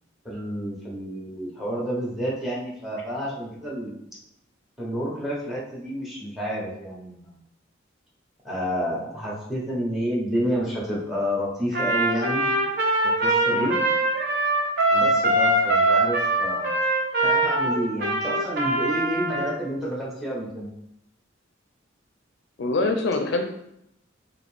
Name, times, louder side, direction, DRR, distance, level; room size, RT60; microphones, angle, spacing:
voice 1, 0.2-3.9 4.8-7.3 8.4-12.4 13.0-13.8 14.9-16.7 17.2-20.7, equal, ahead, -4 dB, 1.1 m, -29 dB
Trumpet, 11.7-19.5, right 1 dB, 55° right, 0.8 m, -22 dB
voice 2, 22.6-23.5, left 2 dB, 65° left, 4 dB, 0.4 m, -24 dB
4.0 x 2.7 x 3.5 m, 0.79 s
head